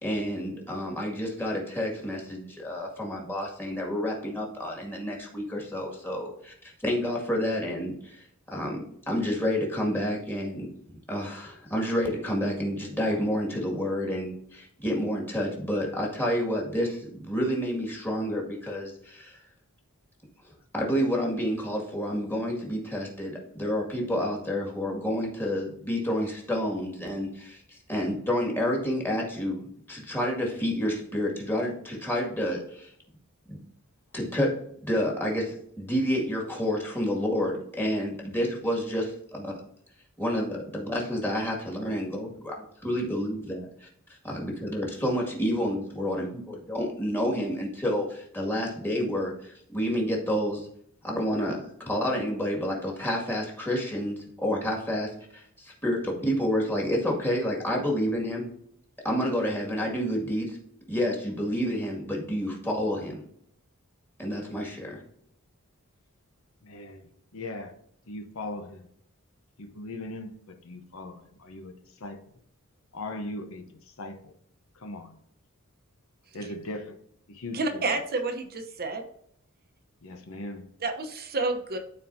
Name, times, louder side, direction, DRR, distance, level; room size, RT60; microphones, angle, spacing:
voice 1, 0.0-6.5 6.8-8.2 8.5-10.7 11.1-19.4 20.7-29.6 29.9-32.9 33.5-33.6 34.1-34.5 34.8-39.6 40.2-43.9 44.2-50.7 51.0-58.5 59.0-60.6 60.9-63.2 64.2-65.0, equal, 10° left, -2 dB, 2.0 m, -29 dB
voice 2, 66.6-67.7 68.1-68.9 69.6-72.2 72.9-74.3 74.7-75.2 76.3-76.9 77.3-77.8 80.0-80.6, left 2 dB, 65° left, 6 dB, 0.9 m, -39 dB
voice 3, 77.5-79.0 80.8-81.8, right 3 dB, 45° right, 5 dB, 0.9 m, -29 dB
13.0 x 4.5 x 2.7 m, 0.68 s
head